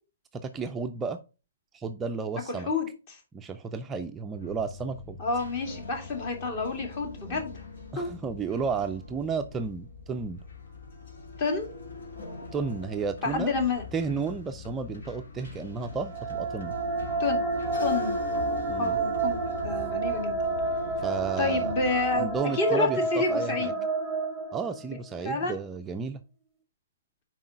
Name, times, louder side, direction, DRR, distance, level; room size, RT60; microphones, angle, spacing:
voice 1, 0.3-1.2 1.7-2.7 3.3-5.2 7.2-7.4 7.9-10.4 12.5-13.6 13.9-16.7 18.7-19.0 21.0-21.8 22.1-23.7 24.5-26.2, right 5 dB, 15° right, 6 dB, 0.4 m, -32 dB
voice 2, 2.7-3.2 5.2-7.5 8.0-8.1 11.4-11.7 13.2-13.8 17.2-17.4 17.8-18.2 18.8-20.4 21.4-23.7 25.2-25.6, left 3 dB, 40° left, 4 dB, 2.3 m, -29 dB
sound 1, 4.3-22.4, left 3 dB, 75° left, 2.7 m, -41 dB
sound 2, 15.9-25.1, right 3 dB, 5° left, 1.1 m, -30 dB
5.8 x 4.6 x 5.2 m, 0.32 s
hypercardioid pair, 150°, 0 cm